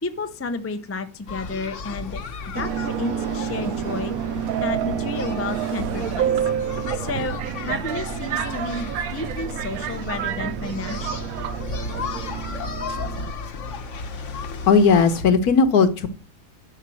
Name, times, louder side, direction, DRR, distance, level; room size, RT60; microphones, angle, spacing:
voice 1, 0.0-2.2 2.5-4.1 4.6-6.4 6.9-11.2, left 3 dB, 20° left, 9 dB, 0.3 m, -31 dB
sound 1, 1.3-15.2, left 4 dB, 50° left, 1.2 m, -35 dB
Subway metro underground, 2.6-13.3, right 9 dB, 65° right, 1.1 m, -28 dB
voice 2, 14.7-16.1, left 5 dB, 70° left, 10 dB, 1.6 m, -16 dB
11.5 x 5.7 x 6.2 m, 0.36 s
omnidirectional pair, 1.7 m